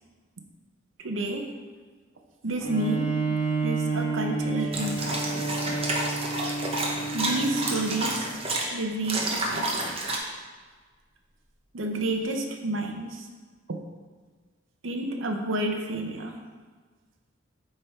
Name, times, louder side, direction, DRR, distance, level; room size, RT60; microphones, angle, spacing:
voice 1, 1.0-1.5 2.4-3.2 3.6-5.3 7.1-8.4 8.7-10.0 11.7-13.3 14.8-16.4, right 2 dB, 80° right, 3 dB, 0.7 m, -30 dB
Bowed string instrument, 2.6-8.2, right 3 dB, 15° left, 1.5 m, -30 dB
sound 1, 4.7-8.6 9.0-10.2, right 2 dB, 30° right, 0.9 m, -30 dB
7.9 x 3.5 x 4.4 m, 1.5 s
head